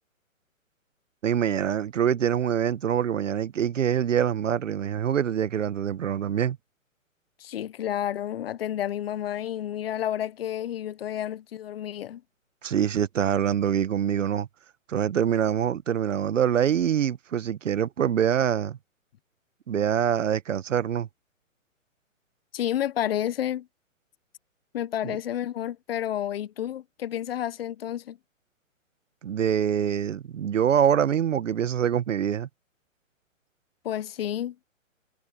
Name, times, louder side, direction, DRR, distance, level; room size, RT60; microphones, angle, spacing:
voice 1, 1.2-6.6 12.6-14.5 14.9-18.8 19.7-21.1 25.0-25.2 29.2-32.5, right 9 dB, 65° right, 1.1 m, -25 dB
voice 2, 7.4-12.2 22.5-23.7 24.7-28.2 33.8-34.6, left 11 dB, 45° left, 1.1 m, -30 dB
hypercardioid pair, 140°, 41 cm